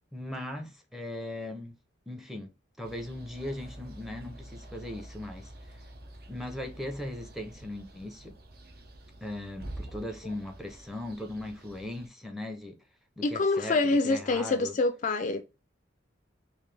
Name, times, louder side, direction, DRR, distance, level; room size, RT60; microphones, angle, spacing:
voice 1, 0.1-1.7 2.1-2.5 2.8-5.5 6.3-8.3 9.2-12.8 13.2-14.7, left 1 dB, ahead, 0.6 m, -38 dB
sound 1, 2.8-12.1, right 1 dB, 50° right, 0.7 m, -47 dB
voice 2, 13.2-15.4, left 3 dB, 40° left, 0.3 m, -26 dB
4.0 x 2.5 x 3.2 m
head